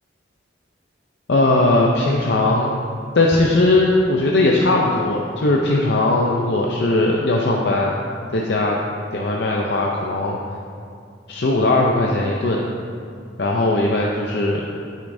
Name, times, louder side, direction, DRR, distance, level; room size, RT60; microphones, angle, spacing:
voice 1, 1.3-2.7 3.1-7.9 8.3-8.8 9.1-10.4 11.3-12.6 13.4-14.6, left 2 dB, 60° left, -2 dB, 0.6 m, -18 dB
11.5 x 6.4 x 2.7 m, 2.3 s
head